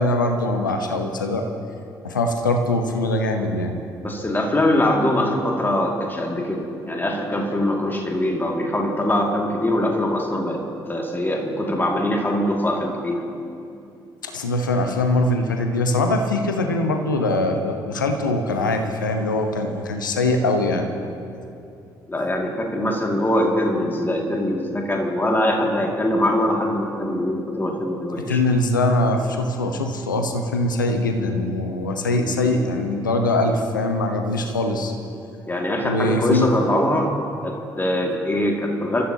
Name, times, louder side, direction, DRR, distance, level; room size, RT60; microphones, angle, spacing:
voice 1, 0.0-1.4 2.0-3.7 14.2-20.9 28.2-34.9 35.8-36.5, left 2 dB, 85° left, 5 dB, 1.0 m, -22 dB
voice 2, 4.0-13.3 22.1-28.4 35.5-37.2 37.4-39.0, left 1 dB, 20° left, 0 dB, 2.4 m, -22 dB
26.5 x 14.5 x 2.9 m, 2.6 s
figure-of-eight pair, 45°, 10 cm